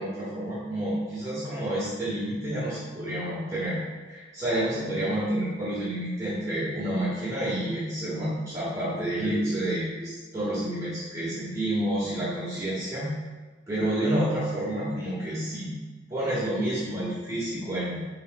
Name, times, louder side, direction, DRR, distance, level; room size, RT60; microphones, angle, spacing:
voice 1, 0.0-3.8 4.1-13.1 13.7-15.7 16.1-18.0, right 1 dB, 20° right, -10 dB, 1.6 m, -29 dB
10.5 x 3.9 x 2.3 m, 1.3 s
head